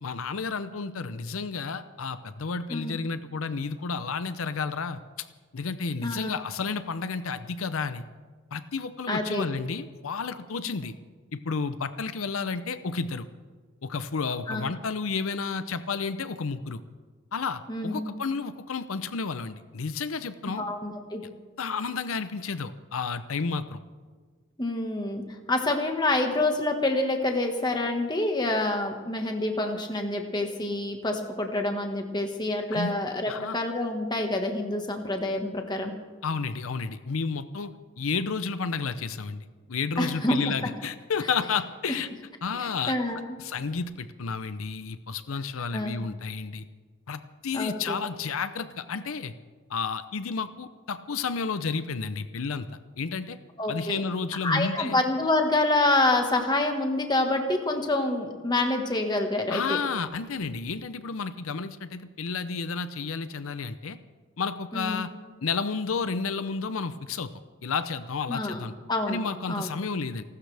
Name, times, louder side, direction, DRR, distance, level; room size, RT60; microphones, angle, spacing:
voice 1, 0.0-5.3 5.5-8.0 8.5-10.9 11.3-13.3 13.8-16.8 17.3-20.6 21.6-23.8 32.7-33.0 33.3-33.6 36.2-37.7 38.0-42.1 42.4-43.0 43.4-46.6 47.1-49.3 49.7-52.7 53.0-53.4 53.7-55.0 59.5-64.0 64.4-65.1 65.4-67.3 67.6-68.7 69.1-70.2, left 5 dB, 80° left, 12 dB, 0.6 m, -31 dB
voice 2, 6.0-6.3 9.1-9.5 14.5-14.6 17.7-18.1 20.6-21.2 24.6-25.2 25.5-35.9 40.0-40.5 42.6-43.2 45.7-46.1 47.5-48.0 53.6-54.0 54.4-59.8 64.7-65.0 68.3-68.6 68.9-69.2 69.5-69.7, left 2 dB, 20° left, 4 dB, 1.5 m, -27 dB
30.0 x 12.5 x 3.4 m, 1.5 s
head